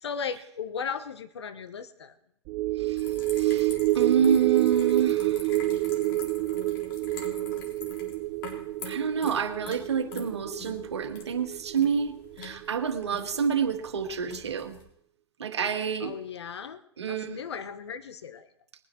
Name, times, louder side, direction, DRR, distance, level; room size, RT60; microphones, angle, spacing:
voice 1, 0.0-2.1 16.0-16.8 17.1-18.5, left 6 dB, 75° left, 12 dB, 1.0 m, -36 dB
sound 1, 2.5-13.1 13.4-13.6, right 17 dB, 40° right, 0.5 m, -28 dB
sound 2, 3.0-14.8, left 4 dB, 55° left, 3.9 m, -45 dB
voice 2, 3.4-5.4 8.9-12.1 12.4-14.8 15.4-16.1 17.0-17.4, right 7 dB, 80° right, 6 dB, 1.6 m, -28 dB
21.0 x 9.7 x 4.4 m, 0.72 s
hypercardioid pair, 105°, 14 cm